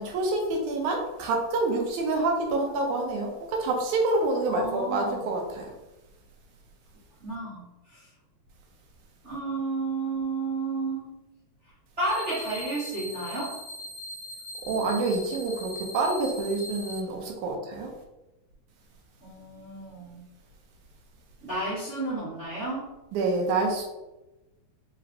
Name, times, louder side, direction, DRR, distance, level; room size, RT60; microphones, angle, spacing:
voice 1, 0.0-5.7 14.7-17.9 23.1-23.8, right 2 dB, 85° right, 1 dB, 2.2 m, -27 dB
voice 2, 4.5-5.3 7.2-8.1 9.2-11.1 12.0-13.6 19.2-20.2 21.4-22.9, right 2 dB, 35° right, -9 dB, 1.1 m, -32 dB
sound 1, 12.0-17.0, left 1 dB, 75° left, 1.9 m, -40 dB
5.1 x 3.0 x 2.8 m, 1.0 s
omnidirectional pair, 3.5 m